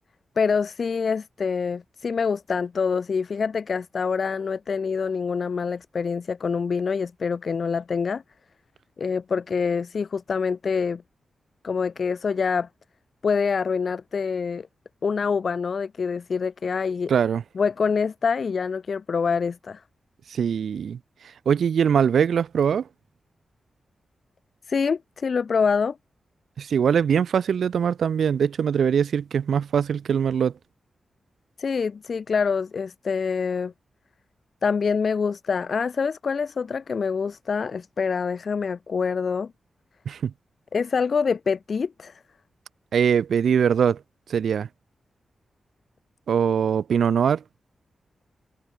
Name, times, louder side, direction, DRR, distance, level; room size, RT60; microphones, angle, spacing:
voice 1, 0.4-8.2 9.0-11.0 11.6-12.7 13.2-14.7 15.0-17.1 17.5-19.8 24.7-26.0 31.6-33.7 34.6-39.5 40.7-42.2, left 5 dB, 45° left, 1.1 m, -25 dB
voice 2, 17.1-17.4 20.3-21.0 21.5-22.8 26.6-30.5 40.1-40.3 42.9-44.0 44.3-44.7 46.3-47.4, right 7 dB, 75° right, 0.3 m, -22 dB
wide cardioid pair, 170°, 0 cm